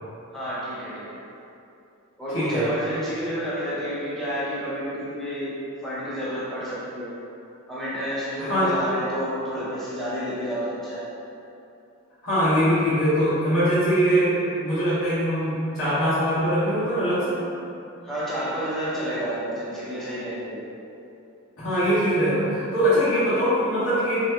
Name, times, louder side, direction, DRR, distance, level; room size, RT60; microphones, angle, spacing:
voice 1, 0.3-1.1 2.2-5.5 5.8-7.1 7.7-11.0 18.0-20.7, equal, ahead, -10 dB, 0.5 m, -30 dB
voice 2, 2.3-2.6 8.4-8.7 12.2-14.3 14.6-17.4 21.6-24.2, equal, 75° left, -13 dB, 1.2 m, -22 dB
3.2 x 2.8 x 2.2 m, 2.7 s
head